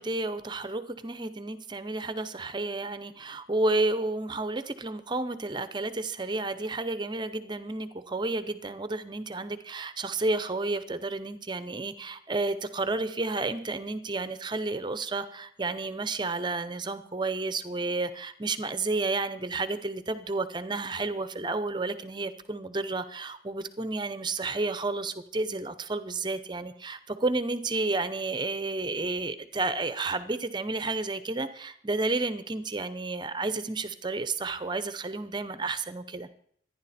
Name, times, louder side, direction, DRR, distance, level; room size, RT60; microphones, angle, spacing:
voice 1, 0.0-36.3, right 3 dB, 25° right, 12 dB, 0.8 m, -31 dB
25.5 x 10.5 x 4.3 m, 0.67 s
head